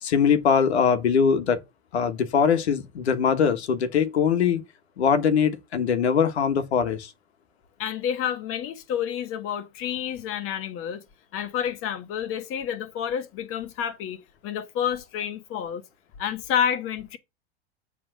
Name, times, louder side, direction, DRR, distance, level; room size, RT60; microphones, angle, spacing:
voice 1, 0.0-1.6 1.9-4.6 5.0-7.1, left 7 dB, 90° left, 1.4 m, -22 dB
voice 2, 7.8-11.0 11.3-15.8 16.2-17.2, left 9 dB, 45° left, 1.5 m, -29 dB
7.7 x 3.6 x 6.4 m
hypercardioid pair, 110°, 32 cm